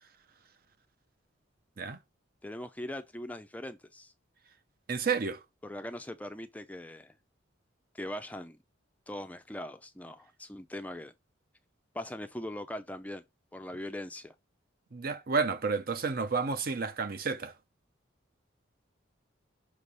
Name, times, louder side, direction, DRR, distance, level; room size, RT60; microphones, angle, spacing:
voice 1, 2.4-4.1 5.6-7.2 7.9-8.6 9.1-11.1 11.9-13.2 13.5-14.3, left 1 dB, 10° left, 0.4 m, -41 dB
voice 2, 4.9-5.4 14.9-17.5, right 5 dB, 45° right, 0.6 m, -31 dB
6.0 x 3.2 x 5.4 m
head